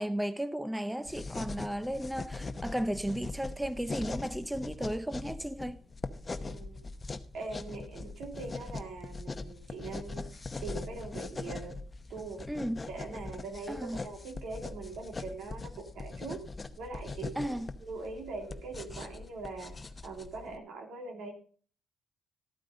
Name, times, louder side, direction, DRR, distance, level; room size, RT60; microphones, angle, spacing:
voice 1, 0.0-5.8 12.5-12.8 13.7-14.0 17.4-17.7, equal, 5° right, 0.6 m, -34 dB
sound 1, 1.1-20.6, left 3 dB, 25° left, 0.8 m, -41 dB
voice 2, 6.4-6.8 7.3-11.8 12.1-12.4 12.9-16.4 16.8-19.8 20.0-21.3, right 3 dB, 75° right, 2.8 m, -42 dB
13.0 x 9.0 x 4.0 m
cardioid pair, 90°, 0 cm